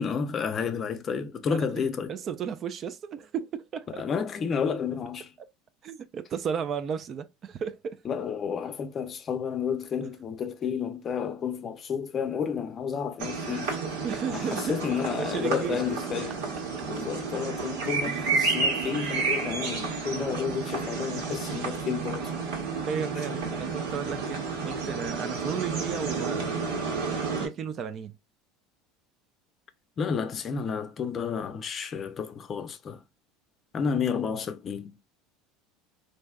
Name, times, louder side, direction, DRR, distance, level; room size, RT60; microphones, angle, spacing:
voice 1, 0.0-2.1 4.0-5.3 8.0-13.8 14.3-16.4 16.9-22.3 23.4-23.5 30.0-33.0 33.7-35.0, left 6 dB, 35° left, 0.5 m, -31 dB
voice 2, 2.1-4.1 5.8-8.0 14.0-15.9 16.6-16.7 18.1-18.3 20.1-20.4 22.8-26.6 27.4-28.2, right 7 dB, 40° right, 0.4 m, -34 dB
sound 1, 13.2-27.5, right 4 dB, 85° right, 1.4 m, -31 dB
3.2 x 2.6 x 2.2 m
supercardioid pair, 110°, 0 cm